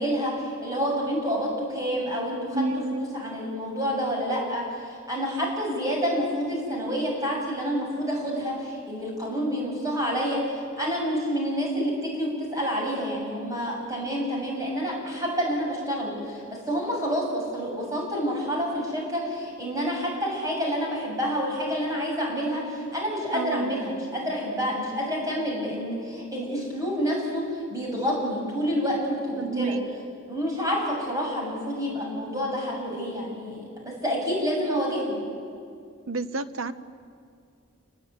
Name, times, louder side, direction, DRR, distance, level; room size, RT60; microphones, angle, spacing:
voice 1, 0.0-29.8 30.3-35.2, equal, 15° right, -2 dB, 7.3 m, -28 dB
voice 2, 2.5-3.1 23.3-23.8 29.4-29.8 36.1-36.7, right 3 dB, 80° right, 12 dB, 1.0 m, -29 dB
29.0 x 20.5 x 9.6 m, 2.3 s
head